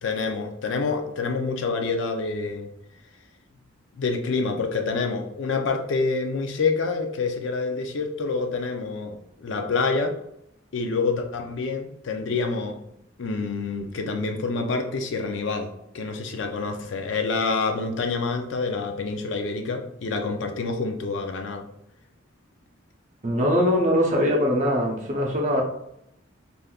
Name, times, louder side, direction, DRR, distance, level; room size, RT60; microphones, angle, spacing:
voice 1, 0.0-2.7 4.0-10.1 10.7-12.8 13.2-21.7, left 4 dB, 70° left, 5 dB, 0.4 m, -27 dB
voice 2, 23.2-25.6, equal, 40° right, -1 dB, 0.7 m, -22 dB
3.4 x 2.5 x 2.3 m, 0.77 s
head